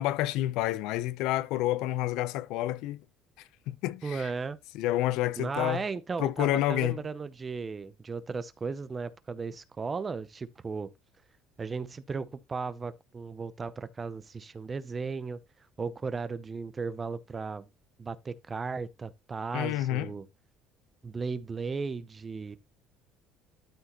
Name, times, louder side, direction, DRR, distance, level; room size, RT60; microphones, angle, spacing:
voice 1, 0.0-3.0 3.7-4.3 4.7-5.8 6.2-7.0 19.5-20.1, left 15 dB, 70° left, 0.7 m, -29 dB
voice 2, 4.0-4.6 5.4-10.9 11.6-15.4 15.8-17.7 18.0-20.3 21.0-22.6, right 4 dB, 20° right, 0.6 m, -35 dB
12.5 x 4.8 x 3.0 m
cardioid pair, 160°, 0 cm